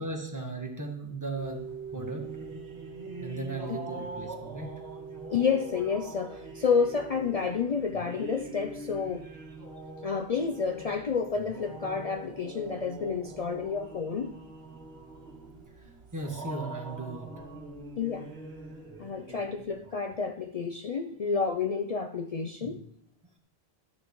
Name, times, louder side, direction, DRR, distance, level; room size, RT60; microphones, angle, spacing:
voice 1, 0.0-2.6 3.2-4.7 15.8-17.3 22.6-22.7, right 2 dB, 20° right, 2 dB, 1.5 m, -37 dB
sound 1, 1.3-19.9, right 3 dB, 80° right, 1.7 m, -43 dB
voice 2, 5.3-9.3 10.0-14.4 18.0-18.3 19.0-22.8, left 5 dB, 50° left, 5 dB, 0.5 m, -30 dB
12.5 x 10.0 x 3.1 m, 0.71 s
omnidirectional pair, 1.1 m